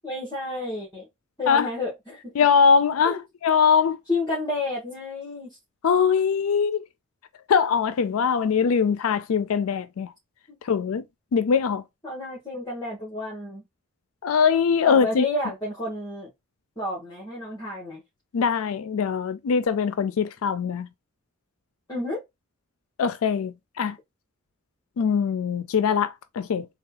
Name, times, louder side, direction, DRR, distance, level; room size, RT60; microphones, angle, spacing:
voice 1, 0.0-1.1 1.4-2.3 3.0-3.2 4.1-5.6 10.5-10.6 12.0-13.6 14.8-16.3 16.8-18.0 21.9-22.2, left 2 dB, 20° left, 1.4 m, -31 dB
voice 2, 2.4-4.0 5.8-6.8 7.5-10.1 10.6-11.0 11.3-11.8 14.2-15.3 18.3-20.9 23.0-24.0 25.0-26.7, left 6 dB, 80° left, 0.4 m, -22 dB
3.8 x 2.3 x 3.8 m
head